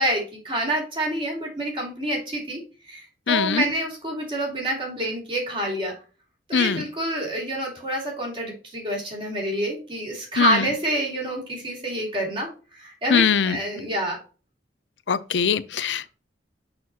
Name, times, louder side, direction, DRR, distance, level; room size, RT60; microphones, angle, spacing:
voice 1, 0.0-5.9 6.5-14.2, right 1 dB, 30° right, 2.7 m, -27 dB
voice 2, 3.3-3.7 6.5-6.8 10.4-10.7 13.1-13.6 15.1-16.1, left 6 dB, 80° left, 0.5 m, -22 dB
6.3 x 5.9 x 2.8 m
head